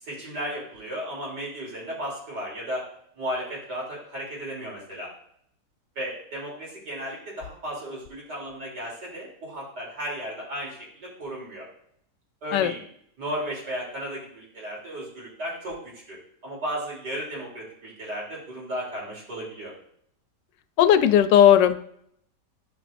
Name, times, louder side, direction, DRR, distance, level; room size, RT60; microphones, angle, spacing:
voice 1, 0.0-2.8 3.2-5.1 6.0-11.7 12.4-12.8 13.2-16.2 16.4-19.7, equal, 70° right, -4 dB, 3.7 m, -34 dB
voice 2, 20.8-21.8, left 10 dB, 90° left, 11 dB, 1.3 m, -17 dB
12.5 x 5.2 x 2.5 m, 0.69 s
omnidirectional pair, 1.9 m